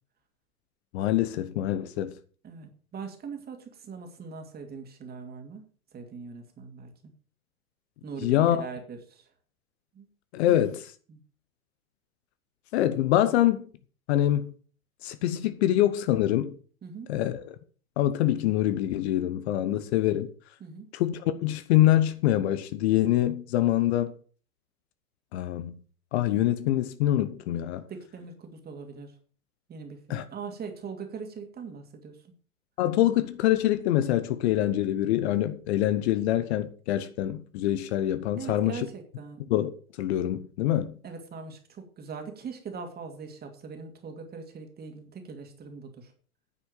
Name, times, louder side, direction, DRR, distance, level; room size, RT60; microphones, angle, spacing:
voice 1, 0.9-2.1 8.2-8.7 10.3-10.9 12.7-13.7 14.1-14.5 15.0-16.5 17.1-17.5 18.0-20.3 20.9-24.1 25.3-25.7 26.1-27.8 30.1-30.2 32.8-38.9 39.5-39.7 40.0-41.0, left 13 dB, 45° left, 1.0 m, -25 dB
voice 2, 2.4-5.7 5.9-7.1 8.0-9.2 9.9-10.1 11.1-11.2 16.8-17.1 20.6-20.9 27.9-29.1 29.7-32.2 38.4-39.4 41.0-46.1, right 5 dB, 20° right, 2.5 m, -41 dB
9.9 x 7.1 x 6.4 m
figure-of-eight pair, 100°, 44 cm